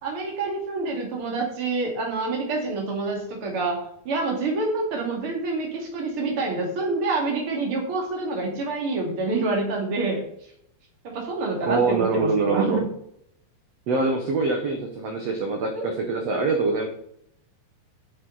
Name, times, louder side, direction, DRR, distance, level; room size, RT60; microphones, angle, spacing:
voice 1, 0.0-10.2 11.0-12.9 15.8-15.9 16.3-16.4, right 3 dB, 40° right, 0 dB, 3.0 m, -27 dB
voice 2, 11.6-12.8 13.9-16.9, right 3 dB, 65° right, 3 dB, 1.7 m, -24 dB
10.5 x 7.1 x 4.1 m, 0.71 s
omnidirectional pair, 4.3 m